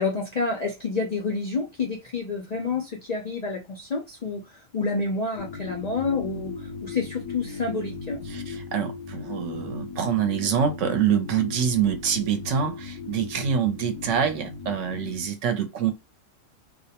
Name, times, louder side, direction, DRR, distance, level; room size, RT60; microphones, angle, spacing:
voice 1, 0.0-8.2, left 4 dB, 60° left, 0.4 m, -29 dB
sound 1, 5.4-15.3, left 4 dB, 90° left, 1.0 m, -37 dB
voice 2, 8.3-15.9, right 8 dB, 75° right, 0.9 m, -25 dB
2.4 x 2.1 x 2.8 m
omnidirectional pair, 1.3 m